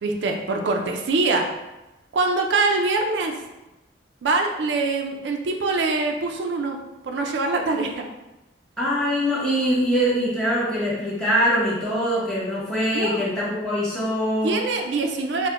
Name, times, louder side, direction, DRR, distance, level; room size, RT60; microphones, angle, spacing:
voice 1, 0.0-1.5 2.1-3.4 4.2-6.8 7.0-8.1 12.9-13.2 14.4-15.5, right 3 dB, 90° right, 3 dB, 0.4 m, -24 dB
voice 2, 8.8-14.6, equal, 5° left, -8 dB, 1.0 m, -23 dB
4.3 x 2.1 x 2.4 m, 0.99 s
head